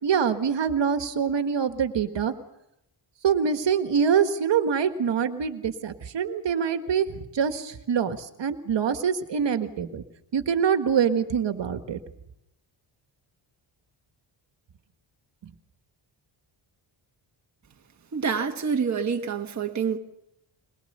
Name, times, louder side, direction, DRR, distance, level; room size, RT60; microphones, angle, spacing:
voice 1, 0.0-2.3 3.2-10.0 10.3-12.0, right 7 dB, 60° right, 1.7 m, -25 dB
voice 2, 18.1-20.0, right 6 dB, 35° right, 1.3 m, -27 dB
22.0 x 21.5 x 6.8 m
cardioid pair, 125°, 50 cm